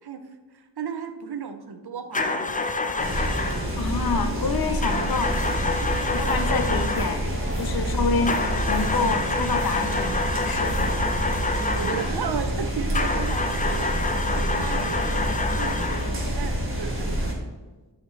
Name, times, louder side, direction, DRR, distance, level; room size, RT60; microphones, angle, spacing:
voice 1, 0.0-3.0 7.8-8.1 9.0-9.2 11.7-17.5, right 6 dB, 60° right, 7 dB, 0.7 m, -35 dB
sound 1, 2.1-3.7 4.8-7.3 8.2-12.2 12.9-16.2, left 3 dB, 20° left, 0.3 m, -28 dB
sound 2, 3.0-17.3, equal, 30° right, 1.3 m, -27 dB
voice 2, 3.8-5.5 6.1-7.2 7.5-8.3 8.7-10.7, left 4 dB, 55° left, 7 dB, 0.6 m, -27 dB
sound 3, 5.3-5.7 6.2-6.6 6.9-7.2 7.5-11.6, left 2 dB, 90° left, 1.1 m, -46 dB
7.6 x 4.3 x 3.2 m, 1.2 s
wide cardioid pair, 110°, 44 cm